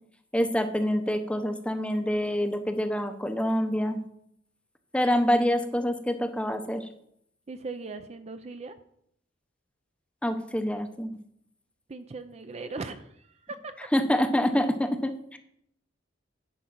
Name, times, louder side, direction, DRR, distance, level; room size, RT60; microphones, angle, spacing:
voice 1, 0.3-4.0 4.9-6.8 10.2-11.1 13.9-15.4, equal, 5° left, 8 dB, 0.7 m, -26 dB
voice 2, 7.5-8.8 11.9-13.9, right 3 dB, 35° right, 9 dB, 0.5 m, -39 dB
10.0 x 5.2 x 6.0 m, 0.71 s
head